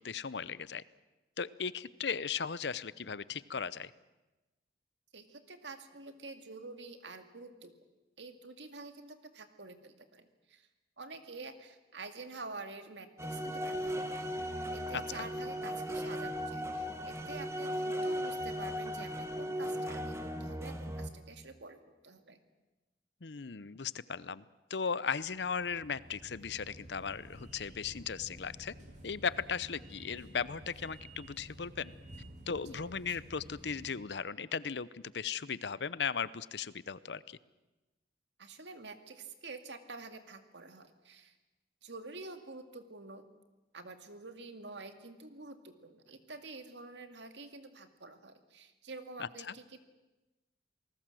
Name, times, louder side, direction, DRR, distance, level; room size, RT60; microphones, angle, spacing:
voice 1, 0.0-0.8 1.4-3.9 14.9-15.0 23.2-24.4 24.7-28.7 29.0-31.9 32.5-37.4 49.2-49.3, left 6 dB, 70° left, 18 dB, 0.7 m, -37 dB
voice 2, 5.1-7.7 8.2-10.7 11.0-22.4 32.6-33.2 38.4-41.3 41.8-43.3 43.7-49.8, right 3 dB, 80° right, 8 dB, 2.2 m, -48 dB
sound 1, 13.2-21.1, equal, 15° right, 1.7 m, -37 dB
sound 2, 25.2-33.9, equal, 45° right, 4.4 m, -52 dB
27.5 x 19.5 x 7.7 m, 1.1 s
head